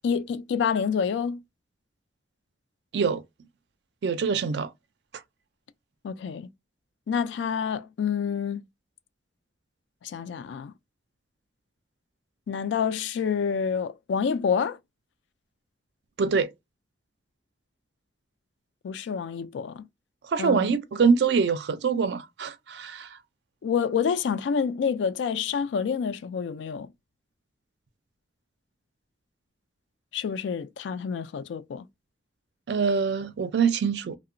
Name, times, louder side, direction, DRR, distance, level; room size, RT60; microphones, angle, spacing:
voice 1, 0.0-1.4 6.0-6.5 7.1-8.6 10.0-10.7 12.5-14.8 18.8-19.8 20.4-20.7 23.6-26.9 30.1-31.9, left 6 dB, 80° left, 0.3 m, -28 dB
voice 2, 4.0-4.7 16.2-16.5 20.3-23.1 32.7-34.2, right 5 dB, 65° right, 0.4 m, -24 dB
2.8 x 2.0 x 2.5 m
head